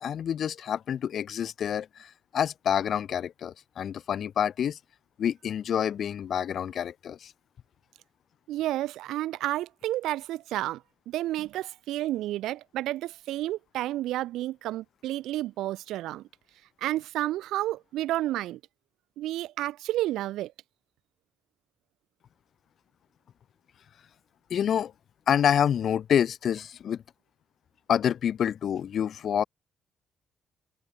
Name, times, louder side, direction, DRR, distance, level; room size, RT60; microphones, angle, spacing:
voice 1, 0.0-4.8 5.2-7.3 24.5-24.9 25.3-27.0 27.9-29.4, left 9 dB, 60° left, 1.9 m, -27 dB
voice 2, 8.5-16.3 16.8-18.6 19.2-20.5, right 15 dB, 90° right, 0.6 m, -31 dB
cardioid pair, 90°, 0 cm